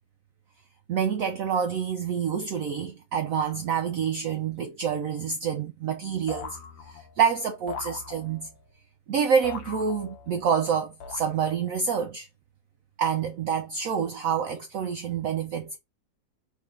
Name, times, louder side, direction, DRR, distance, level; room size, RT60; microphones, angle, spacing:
voice 1, 0.9-6.6 6.9-8.5 9.1-12.3 13.0-15.8, right 7 dB, 80° right, 0.7 m, -27 dB
sound 1, 6.3-7.2 7.7-8.6 9.4-10.5 11.0-11.7, left 6 dB, 85° left, 1.4 m, -40 dB
3.7 x 2.7 x 3.6 m
omnidirectional pair, 2.0 m